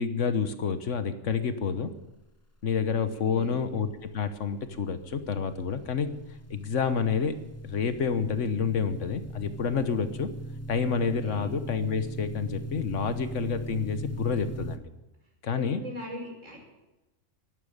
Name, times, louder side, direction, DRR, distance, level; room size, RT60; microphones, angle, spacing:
voice 1, 0.0-1.9 2.6-6.2 6.5-7.4 7.6-10.3 10.7-14.8 15.4-15.8, left 6 dB, 75° left, 11 dB, 1.4 m, -29 dB
voice 2, 3.2-3.7 11.2-11.5 15.5-16.6, left 1 dB, 80° right, -2 dB, 6.2 m, -40 dB
sound 1, 3.9-14.8, right 1 dB, 15° left, 0.7 m, -40 dB
12.0 x 11.5 x 9.8 m, 1.0 s
omnidirectional pair, 1.3 m